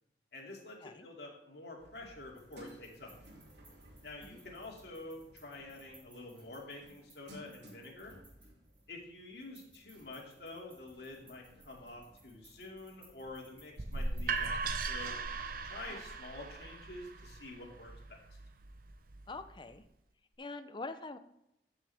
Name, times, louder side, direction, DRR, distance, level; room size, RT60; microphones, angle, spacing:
voice 1, 0.3-3.2 4.0-8.2 8.9-15.1 15.6-18.2, left 2 dB, 65° left, -1 dB, 2.5 m, -48 dB
sound 1, 1.8-16.6, equal, 75° right, 2.7 m, -60 dB
sound 2, 2.3-9.0 9.4-14.6, right 2 dB, 10° right, 3.6 m, -63 dB
sound 3, 13.8-19.6, right 4 dB, 50° right, 0.7 m, -39 dB
voice 2, 19.3-19.8 20.4-21.2, left 3 dB, 25° left, 10 dB, 0.6 m, -44 dB
14.0 x 6.3 x 3.5 m, 0.84 s
head